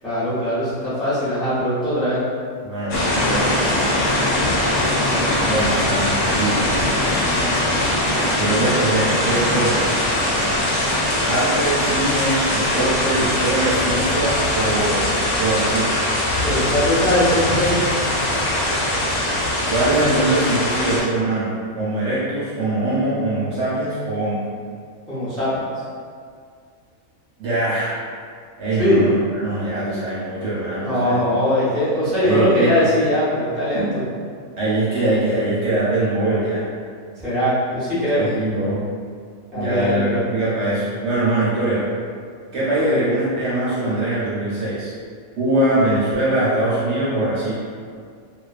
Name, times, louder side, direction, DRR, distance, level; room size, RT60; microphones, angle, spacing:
voice 1, 0.0-2.2 16.4-17.8 25.1-25.5 28.8-29.0 30.8-34.0 37.2-38.3 39.5-40.3 42.8-43.0, equal, ahead, -11 dB, 0.5 m, -20 dB
voice 2, 2.6-3.6 5.4-6.1 6.4-6.7 8.3-10.0 11.3-16.0 18.3-18.6 19.7-24.4 27.4-27.9 28.6-31.4 32.2-32.7 33.7-33.9 34.6-36.7 38.2-38.8 39.5-41.9 42.5-44.9 45.4-47.7, right 1 dB, 65° right, -9 dB, 0.8 m, -22 dB
sound 1, 2.9-21.0, left 1 dB, 85° left, 1.1 m, -21 dB
2.4 x 2.2 x 2.3 m, 2.1 s
omnidirectional pair, 1.5 m